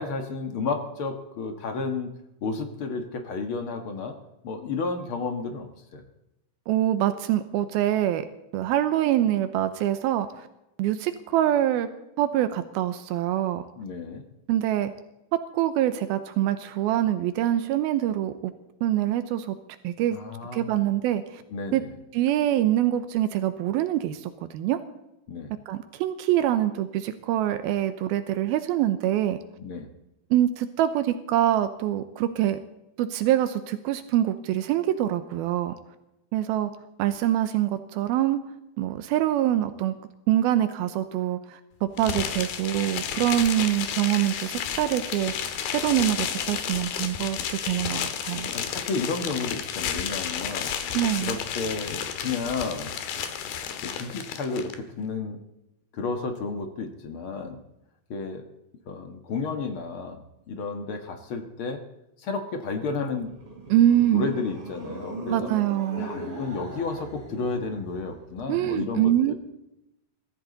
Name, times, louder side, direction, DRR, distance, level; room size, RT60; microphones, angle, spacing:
voice 1, 0.0-2.1 2.4-4.2 4.4-6.0 13.8-14.3 20.1-20.9 21.5-21.9 25.3-25.5 29.6-29.9 48.5-50.7 51.2-52.9 53.8-55.4 55.9-57.6 58.1-58.4 58.9-61.8 62.2-63.4 64.1-65.5 66.0-69.3, left 4 dB, 50° left, 5 dB, 1.6 m, -32 dB
voice 2, 6.7-8.3 8.5-10.5 10.8-11.9 12.2-13.6 14.5-14.9 15.3-18.5 18.8-19.6 19.8-20.2 20.5-21.4 21.7-21.8 22.1-24.8 25.7-29.4 30.3-32.6 33.0-35.7 36.3-36.7 37.0-38.4 38.8-39.9 40.3-48.5 50.9-51.4 63.7-64.2 65.3-66.1 68.5-69.3, right 12 dB, 85° right, 10 dB, 2.7 m, -25 dB
sound 1, 42.0-54.7, left 8 dB, 85° left, 3.2 m, -32 dB
sound 2, 63.1-68.4, right 1 dB, 35° right, 5.2 m, -39 dB
23.5 x 14.5 x 4.0 m, 0.90 s
omnidirectional pair, 4.3 m